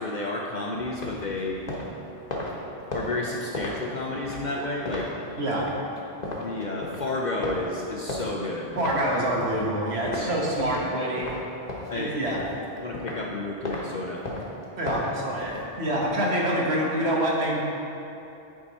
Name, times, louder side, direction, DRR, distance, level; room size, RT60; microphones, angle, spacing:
voice 1, 0.0-1.6 2.9-5.1 6.4-8.8 11.9-12.1 12.7-14.2, left 2 dB, 55° left, -1 dB, 0.5 m, -31 dB
sound 1, 0.8-10.9 11.2-13.3 13.6-13.8 14.2-16.1, left 1 dB, 40° left, 1.1 m, -35 dB
voice 2, 5.4-5.7 8.8-11.3 11.9-12.4 14.8-17.6, right 1 dB, 65° right, -3 dB, 1.4 m, -26 dB
8.5 x 4.8 x 4.1 m, 2.9 s
omnidirectional pair, 1.2 m